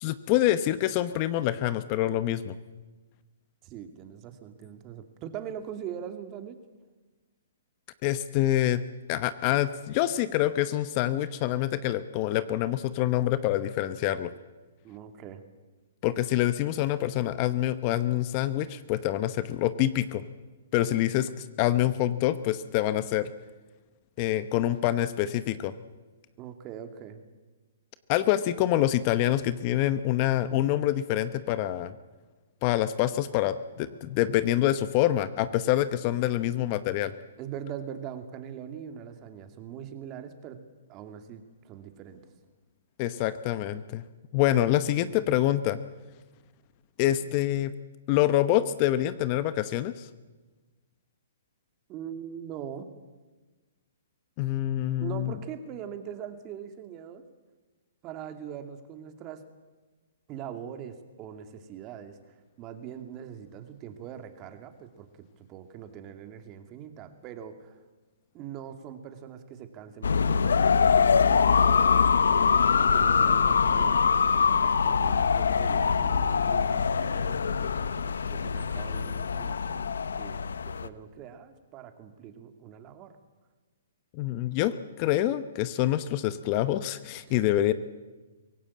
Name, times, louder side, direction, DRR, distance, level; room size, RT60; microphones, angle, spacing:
voice 1, 0.0-2.6 8.0-8.8 9.1-14.3 16.0-20.2 20.7-23.3 24.2-25.7 28.1-31.9 32.6-37.1 43.0-44.0 44.3-45.8 47.0-47.7 48.1-50.1 54.4-55.4 84.1-87.7, left 13 dB, 35° left, 14 dB, 1.0 m, -26 dB
voice 2, 3.6-6.6 14.8-15.4 26.4-27.2 37.4-40.6 40.9-42.2 51.9-52.9 55.0-57.2 58.0-59.4 60.3-62.2 62.6-65.1 65.4-67.8 68.3-72.2 72.8-74.1 74.4-79.9 80.2-80.4 80.6-83.2 87.3-87.4, right 9 dB, 30° right, 7 dB, 2.5 m, -42 dB
sound 1, 70.0-80.9, left 6 dB, 85° left, 1.0 m, -23 dB
24.0 x 17.5 x 8.6 m, 1.3 s
hypercardioid pair, 140°, 0 cm